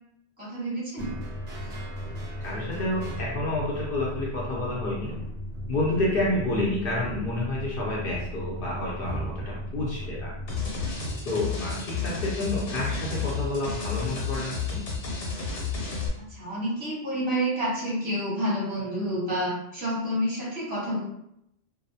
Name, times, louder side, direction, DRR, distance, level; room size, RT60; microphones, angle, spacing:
voice 1, 0.4-1.1 16.3-21.0, equal, 10° right, -7 dB, 0.7 m, -29 dB
sound 1, 1.0-11.0, left 1 dB, 30° left, 0.4 m, -37 dB
sound 2, 1.0-14.1, right 1 dB, 50° right, 0.5 m, -42 dB
voice 2, 2.4-5.1 5.7-10.3 11.2-14.8, left 1 dB, 60° left, -4 dB, 0.7 m, -29 dB
sound 3, 10.5-16.1, left 5 dB, 80° left, 1.1 m, -31 dB
2.6 x 2.0 x 2.6 m, 0.79 s
omnidirectional pair, 1.2 m